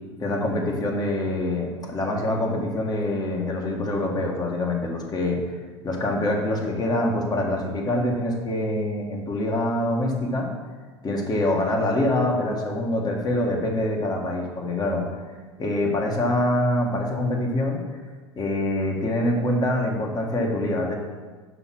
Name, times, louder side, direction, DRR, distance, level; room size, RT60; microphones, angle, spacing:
voice 1, 0.2-5.4 5.8-10.5 11.0-15.0 15.6-17.8 18.4-20.9, left 1 dB, 25° left, 1 dB, 1.8 m, -25 dB
6.9 x 5.7 x 6.1 m, 1.4 s
hypercardioid pair, 85°, 15 cm